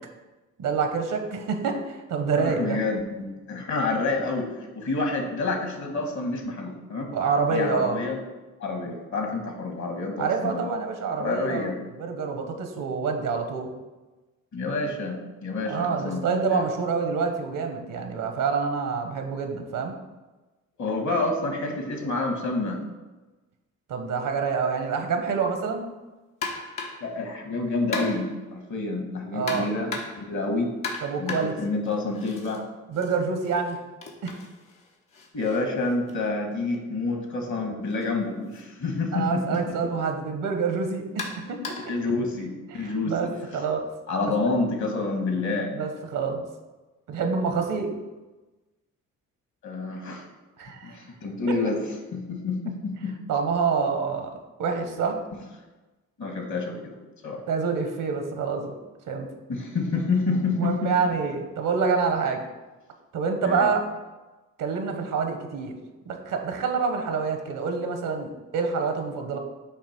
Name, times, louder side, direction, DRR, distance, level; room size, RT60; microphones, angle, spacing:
voice 1, 0.6-2.8 7.1-8.0 10.2-11.7 12.0-13.7 15.7-19.9 23.9-25.9 29.3-29.7 31.0-31.5 32.9-33.8 34.2-34.3 39.1-41.7 42.7-43.9 45.7-46.4 47.1-47.9 50.6-51.0 53.3-54.3 54.6-55.2 57.5-58.7 59.1-59.3 60.5-62.4 63.1-63.9 64.6-65.7 66.0-69.4, right 5 dB, 80° right, 5 dB, 1.1 m, -27 dB
voice 2, 2.4-4.5 4.7-7.1 7.5-8.2 8.6-10.7 11.2-11.8 14.5-16.6 20.8-22.8 27.0-30.7 31.2-32.6 35.3-39.6 41.9-43.3 44.1-45.7 49.6-50.2 50.8-51.8 52.1-53.1 56.2-57.0 57.2-57.4 59.5-60.9 63.4-63.7, left 3 dB, 65° left, 2 dB, 1.7 m, -28 dB
sound 1, 26.4-27.1 27.9-28.4 29.5-30.3 30.8-32.6 32.9-36.8 37.9-38.1 38.5-38.6 39.5-39.7 41.2-42.0, left 4 dB, 85° left, 1.3 m, -37 dB
8.2 x 2.9 x 6.0 m, 1.2 s
cardioid pair, 65°, 31 cm